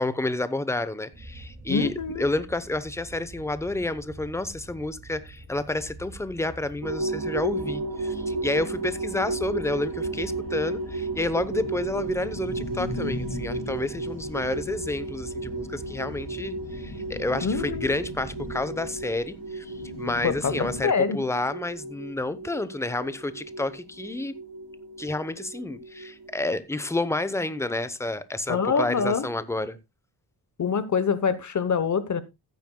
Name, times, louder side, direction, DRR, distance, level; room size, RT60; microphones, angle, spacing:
voice 1, 0.0-24.3 25.0-29.8, left 2 dB, 5° left, 0.7 m, -30 dB
sound 1, 1.1-18.5, right 2 dB, 25° right, 2.4 m, -45 dB
voice 2, 1.7-2.3 17.4-17.9 20.2-21.2 28.5-29.3 30.6-32.2, left 5 dB, 45° left, 1.0 m, -25 dB
sound 2, 6.8-26.6, right 2 dB, 75° right, 3.3 m, -34 dB
sound 3, 9.4-20.8, left 3 dB, 85° left, 5.0 m, -40 dB
15.5 x 9.4 x 2.2 m
wide cardioid pair, 130°, 40 cm